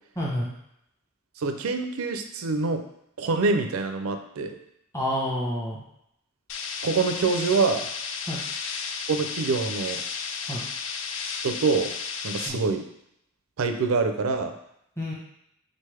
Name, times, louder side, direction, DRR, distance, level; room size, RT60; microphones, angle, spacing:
voice 1, 0.2-0.5 4.9-5.8 8.3-8.4 10.5-10.6 12.5-12.6 15.0-15.1, equal, 15° left, -5 dB, 0.9 m, -28 dB
voice 2, 1.4-2.8 3.2-4.6 6.8-7.9 9.1-10.0 11.4-11.9 12.2-12.9 13.6-14.5, right 4 dB, 90° right, 6 dB, 0.5 m, -25 dB
sound 1, 6.5-12.5, left 5 dB, 65° left, 0.4 m, -33 dB
4.0 x 3.3 x 3.3 m, 0.76 s
head